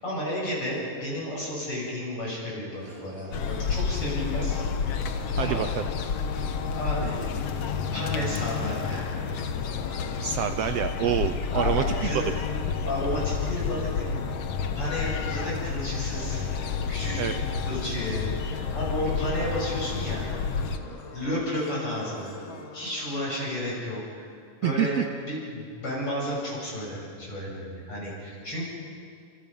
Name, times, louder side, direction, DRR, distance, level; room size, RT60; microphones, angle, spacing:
voice 1, 0.0-4.6 5.3-5.6 6.8-7.2 7.9-9.1 11.5-12.3 12.9-14.1 14.7-16.4 16.9-17.2 17.6-20.5 21.1-22.3 22.7-24.3 24.6-28.6, left 1 dB, 40° left, -5 dB, 8.5 m, -32 dB
sound 1, 2.7-22.7, right 1 dB, 10° right, 3.3 m, -48 dB
sound 2, 3.3-20.8, left 6 dB, 60° left, 2.0 m, -30 dB
sound 3, 4.5-23.4, left 7 dB, 80° left, 1.1 m, -43 dB
voice 2, 5.4-5.8 10.2-12.3 17.2-17.4 24.6-25.1, right 10 dB, 75° right, 9 dB, 1.5 m, -27 dB
29.0 x 27.0 x 5.5 m, 2.2 s
omnidirectional pair, 3.6 m